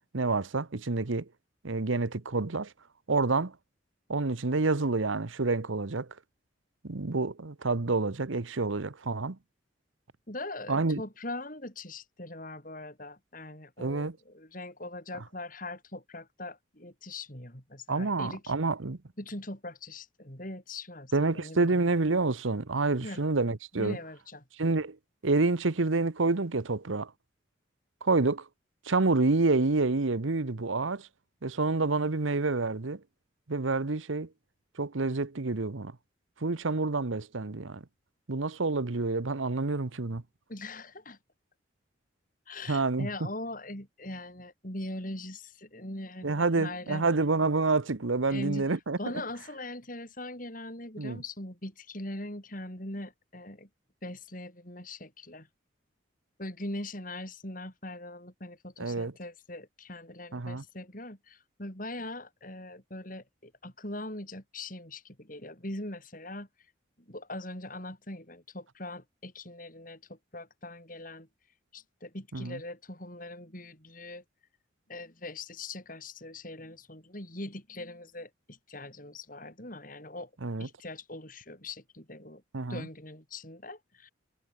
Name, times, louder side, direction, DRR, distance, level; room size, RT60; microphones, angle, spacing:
voice 1, 0.1-1.3 1.6-2.7 3.1-3.6 4.1-6.1 6.8-9.4 10.7-11.0 13.8-14.2 17.9-19.0 21.1-24.0 24.6-25.0 25.2-27.1 28.0-28.5 28.8-31.1 31.4-33.0 33.5-34.3 34.8-36.0 36.4-37.8 38.3-40.2 42.7-43.1 46.2-49.0 51.0-51.2 58.8-59.1 60.3-60.6 72.3-72.6 80.4-80.7 82.5-82.9, right 3 dB, 85° right, 1.0 m, -28 dB
voice 2, 10.3-18.5 19.2-21.8 23.0-23.2 23.7-24.4 40.5-41.2 42.5-47.0 48.3-48.7 49.0-53.7 54.0-55.5 56.4-66.5 67.1-71.3 71.7-74.2 74.9-80.3 80.6-82.4 82.7-84.1, left 2 dB, 45° left, 7.2 m, -41 dB
head